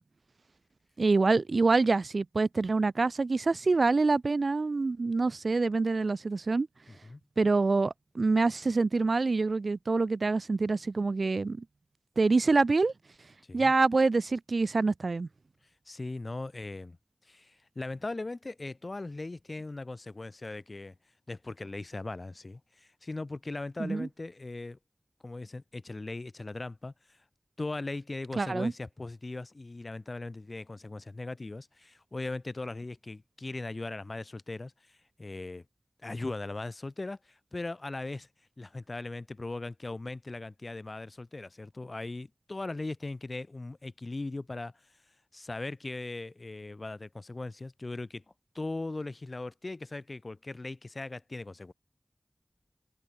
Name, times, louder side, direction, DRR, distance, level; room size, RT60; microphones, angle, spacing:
voice 1, 1.0-6.7 7.4-11.6 12.2-12.9 13.5-15.3 23.8-24.1 28.4-28.7, right 3 dB, 80° right, 0.3 m, -26 dB
voice 2, 6.9-7.2 13.5-13.7 15.9-17.0 17.2-20.9 21.3-24.8 25.2-27.2 27.6-35.6 36.0-38.3 38.6-44.7 45.3-48.2 48.5-51.7, left 2 dB, 55° left, 1.1 m, -39 dB
wide cardioid pair, 40°, 0 cm